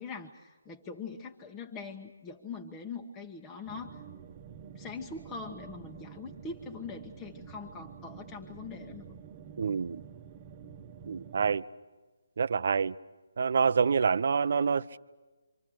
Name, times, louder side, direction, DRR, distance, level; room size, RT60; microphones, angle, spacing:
voice 1, 0.0-4.0 4.7-9.1, left 4 dB, 15° left, 1.3 m, -42 dB
sound 1, 3.6-11.6, right 7 dB, 25° right, 1.3 m, -48 dB
voice 2, 9.6-10.0 11.1-11.6 12.4-12.9 13.4-15.0, right 6 dB, 50° right, 0.8 m, -27 dB
28.5 x 26.0 x 6.4 m
figure-of-eight pair, 145°, 0 cm